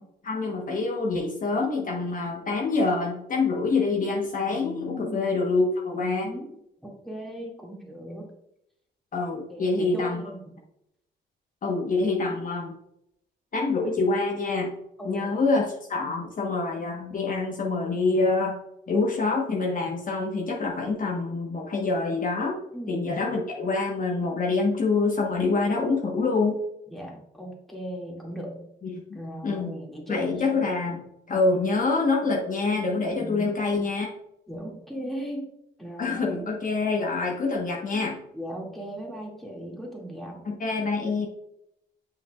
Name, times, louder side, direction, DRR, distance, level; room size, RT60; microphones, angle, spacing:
voice 1, 0.2-6.3 9.1-10.2 11.6-12.7 13.5-14.7 15.0-15.6 15.9-18.5 18.9-22.6 22.9-26.6 28.8-29.2 29.4-29.7 30.1-31.0 31.3-34.1 36.0-38.2 40.4-41.3, left 3 dB, 40° left, -1 dB, 1.2 m, -26 dB
voice 2, 4.9-5.3 5.9-6.5 6.8-8.3 9.5-10.6 15.0-15.5 22.7-23.1 26.9-28.7 29.1-30.6 33.1-33.8 34.5-36.5 38.3-40.5, right 1 dB, ahead, -2 dB, 2.2 m, -38 dB
7.1 x 5.8 x 2.4 m, 0.79 s
cardioid pair, 90°, 20 cm